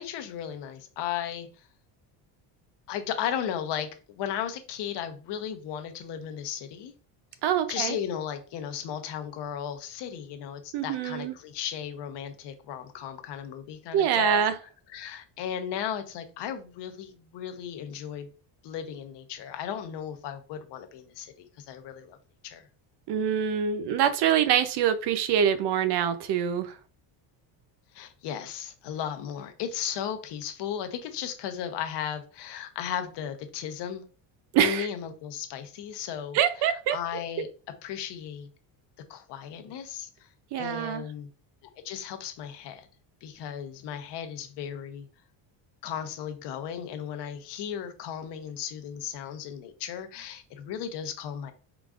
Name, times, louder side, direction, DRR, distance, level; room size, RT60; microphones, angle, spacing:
voice 1, 0.0-1.7 2.9-6.9 7.7-14.4 14.9-18.3 18.6-22.2 22.4-22.7 27.9-34.0 34.6-37.5 37.8-38.5 39.1-40.3 40.6-41.3 41.8-42.9 43.2-45.1 45.8-51.5, left 9 dB, 65° left, 0.9 m, -35 dB
voice 2, 7.4-8.0 10.7-11.3 13.9-14.5 23.1-26.8 34.5-34.9 36.3-37.0 40.5-41.0, right 9 dB, 60° right, 0.6 m, -25 dB
4.9 x 3.9 x 2.4 m
cardioid pair, 160°, 46 cm